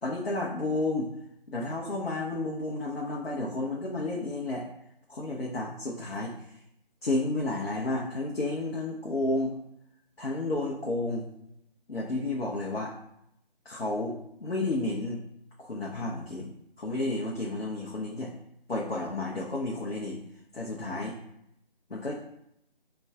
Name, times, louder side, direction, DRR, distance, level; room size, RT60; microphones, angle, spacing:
voice 1, 0.0-1.1 1.5-4.7 5.1-6.3 7.0-9.5 10.2-11.3 11.9-12.9 13.7-15.2 15.6-16.5 16.8-18.3 18.7-20.2 20.5-21.1 21.9-22.1, left 2 dB, 80° left, -4 dB, 0.7 m, -31 dB
5.2 x 2.3 x 2.3 m, 0.78 s
figure-of-eight pair, 160°, 30 cm